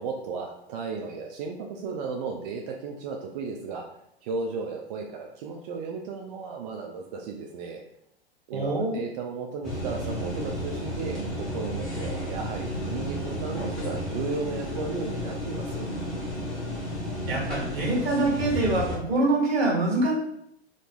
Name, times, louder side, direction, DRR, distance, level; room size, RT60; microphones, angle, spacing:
voice 1, 0.0-3.9 4.2-7.8 8.5-15.9, right 4 dB, 40° right, 1 dB, 0.4 m, -35 dB
voice 2, 8.5-9.0 17.3-20.1, right 2 dB, 65° right, -2 dB, 1.4 m, -25 dB
sound 1, 9.6-19.0, left 1 dB, ahead, 0.9 m, -32 dB
2.9 x 2.6 x 3.3 m, 0.75 s
figure-of-eight pair, 105°, 33 cm